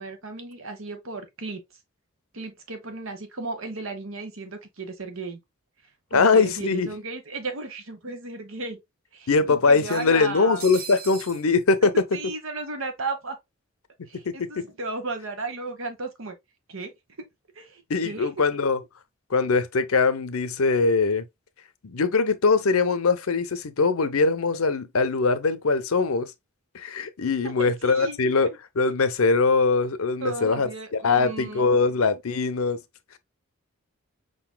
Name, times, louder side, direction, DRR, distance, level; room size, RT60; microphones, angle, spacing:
voice 1, 0.0-1.6 2.3-5.4 6.1-8.8 9.1-10.6 12.1-13.4 14.1-16.4 16.7-16.9 17.2-17.3 17.5-18.3 27.4-28.5 30.2-31.8, right 3 dB, 70° right, 1.1 m, -35 dB
voice 2, 6.1-6.9 9.3-11.9 14.3-14.4 17.9-18.8 19.3-21.2 21.8-26.3 26.7-32.8, left 4 dB, 80° left, 0.7 m, -22 dB
sound 1, 6.3-6.4 6.7-6.8 7.9-8.0 8.3-8.4 9.7-11.5, right 7 dB, 40° right, 0.7 m, -41 dB
5.2 x 3.9 x 2.2 m
head